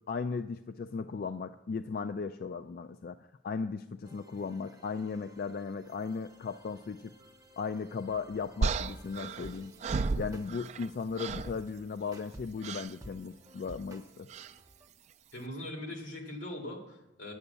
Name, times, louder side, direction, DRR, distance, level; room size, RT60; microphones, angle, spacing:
voice 1, 0.1-3.2 3.4-7.1 7.6-9.7 10.2-14.3, left 5 dB, 50° left, 9 dB, 0.3 m, -36 dB
sound 1, 4.0-14.9, right 1 dB, 20° right, 0.7 m, -54 dB
sound 2, 8.6-10.9 11.2-11.6 12.6-12.9 14.3-14.6, right 4 dB, 35° right, 0.3 m, -33 dB
voice 2, 15.3-17.3, left 1 dB, 85° left, 1 dB, 2.3 m, -41 dB
9.6 x 7.0 x 6.8 m, 0.88 s
head